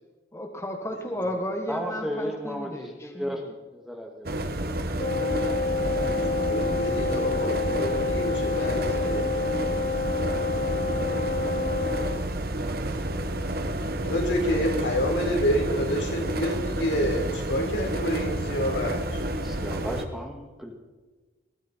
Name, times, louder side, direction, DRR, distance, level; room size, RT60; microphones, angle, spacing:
voice 1, 0.3-3.5, equal, 15° left, 3 dB, 1.5 m, -33 dB
voice 2, 1.7-3.4 3.7-4.3 19.4-20.7, equal, ahead, 2 dB, 2.2 m, -34 dB
sound 1, 4.2-20.0, right 1 dB, 55° right, 1.3 m, -30 dB
Wind instrument woodwind instrument, 5.0-12.3, left 4 dB, 45° left, 0.5 m, -28 dB
voice 3, 6.0-9.3 14.0-19.2, equal, 85° left, 0 dB, 4.3 m, -28 dB
21.0 x 14.5 x 4.5 m, 1.2 s
head